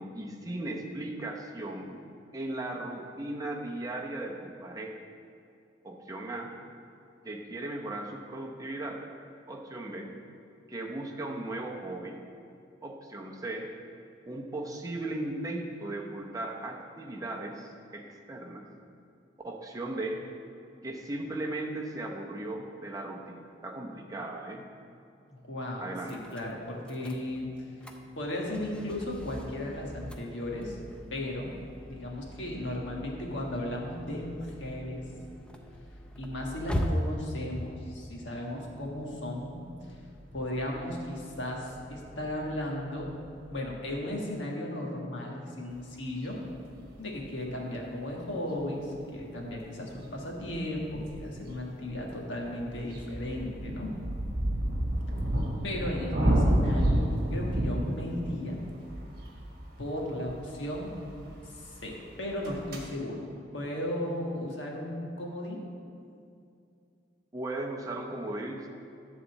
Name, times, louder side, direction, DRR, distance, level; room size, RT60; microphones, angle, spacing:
voice 1, 0.0-2.0 2.3-5.0 5.8-6.5 7.2-9.0 9.5-10.1 10.7-12.2 12.8-13.7 14.3-18.7 19.4-20.2 20.8-24.6 25.8-26.1 67.3-68.7, right 2 dB, 20° right, 0 dB, 0.8 m, -37 dB
voice 2, 25.3-27.5 28.2-30.8 31.1-31.6 31.9-35.0 36.2-40.0 40.3-43.1 43.5-46.4 47.0-53.9 55.6-58.6 59.8-60.9 61.6-63.3 63.5-65.7, left 1 dB, 70° left, -1 dB, 1.5 m, -35 dB
sound 1, 26.0-44.0, equal, 5° left, 0.5 m, -41 dB
sound 2, 46.3-46.4 46.7-47.3 49.2-49.3 49.6-49.7 49.9-50.0 50.2-51.5 51.9-62.0 62.2-62.8, right 1 dB, 50° right, 1.3 m, -30 dB
11.0 x 4.1 x 7.2 m, 2.5 s
head